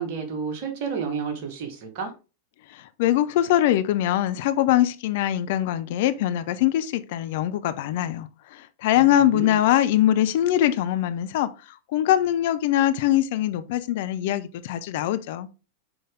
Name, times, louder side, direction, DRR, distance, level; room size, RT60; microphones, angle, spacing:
voice 1, 0.0-2.1 9.0-9.6, right 6 dB, 45° right, 1.9 m, -31 dB
voice 2, 2.7-15.5, left 12 dB, 50° left, 0.5 m, -23 dB
6.1 x 5.0 x 3.8 m
figure-of-eight pair, 90°, 0 cm